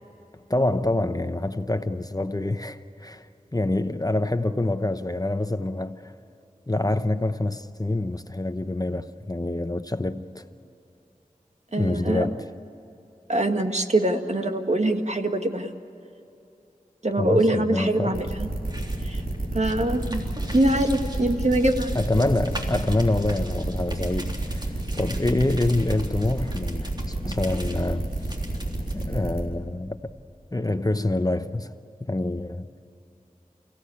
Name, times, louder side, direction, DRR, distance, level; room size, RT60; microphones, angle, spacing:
voice 1, 0.5-6.1 6.7-10.4 11.7-12.4 17.2-18.2 21.9-28.1 28.9-30.1 30.5-31.7 32.0-32.7, left 2 dB, 25° left, 0.9 m, -26 dB
voice 2, 11.7-12.3 13.3-15.7 17.0-18.5 19.0-19.2 19.5-20.2 20.5-22.0, right 1 dB, 50° right, 1.8 m, -23 dB
sound 1, 18.1-29.4, right 2 dB, 90° right, 4.7 m, -30 dB
sound 2, 18.2-29.0, equal, 30° right, 3.5 m, -40 dB
29.5 x 16.5 x 8.6 m
wide cardioid pair, 45°, 15 cm